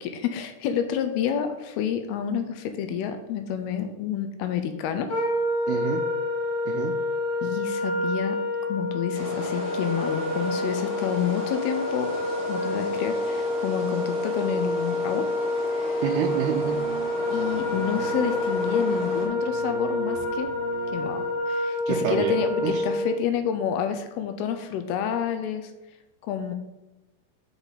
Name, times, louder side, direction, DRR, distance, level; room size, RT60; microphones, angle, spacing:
voice 1, 0.0-5.1 7.4-8.4 8.7-12.1 12.5-15.3 15.9-16.0 17.3-20.5 20.9-25.7 26.2-26.5, left 8 dB, 80° left, 8 dB, 2.5 m, -29 dB
Wind instrument woodwind instrument, 5.1-23.2, left 2 dB, 50° left, 2.4 m, -28 dB
voice 2, 5.7-6.0 6.7-6.9 16.0-16.8 21.9-22.8, right 8 dB, 80° right, 1 dB, 2.4 m, -28 dB
sound 1, 9.1-19.3, right 1 dB, 25° right, 1.4 m, -37 dB
sound 2, 16.2-21.4, right 2 dB, 60° right, 1.7 m, -38 dB
8.1 x 5.5 x 4.0 m, 0.96 s
omnidirectional pair, 4.7 m